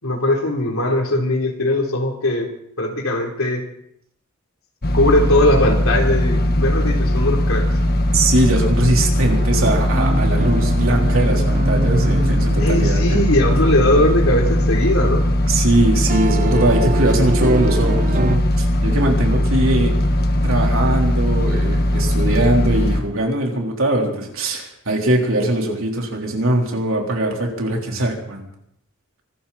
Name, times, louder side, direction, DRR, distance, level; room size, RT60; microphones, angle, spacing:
voice 1, 0.0-2.5 2.8-3.6 4.9-7.7 12.6-15.2, left 1 dB, 75° left, 2 dB, 3.6 m, -19 dB
sound 1, 4.8-23.0, left 1 dB, 50° left, 1.4 m, -19 dB
voice 2, 8.1-13.2 15.5-19.9 20.4-28.5, right 1 dB, 70° right, 0 dB, 3.8 m, -21 dB
sound 2, 9.3-18.4, right 3 dB, 40° right, 0.8 m, -27 dB
24.5 x 13.0 x 4.2 m, 0.74 s
head